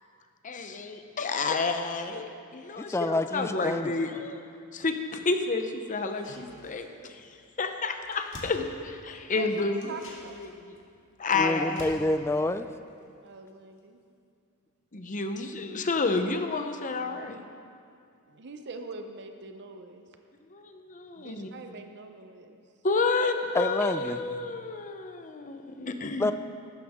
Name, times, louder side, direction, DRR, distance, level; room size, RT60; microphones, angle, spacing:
voice 1, 0.4-4.4 4.7-7.3 7.6-9.9 10.4-10.5 11.2-11.9 14.9-17.5 20.5-21.5 22.8-26.3, left 3 dB, 35° left, 6 dB, 0.8 m, -30 dB
voice 2, 2.8-3.9 11.3-12.7 23.5-24.2 26.2-26.3, left 2 dB, 10° left, 10 dB, 0.4 m, -27 dB
sound 1, 6.0-7.1 7.4-7.5 7.8-9.3 9.7-13.5 13.8-13.9, left 1 dB, 60° left, 2.0 m, -49 dB
voice 3, 9.9-10.3 13.2-14.0 18.3-20.1 21.2-22.6, right 3 dB, 55° right, 6 dB, 0.7 m, -43 dB
14.5 x 12.5 x 3.6 m, 2.4 s
head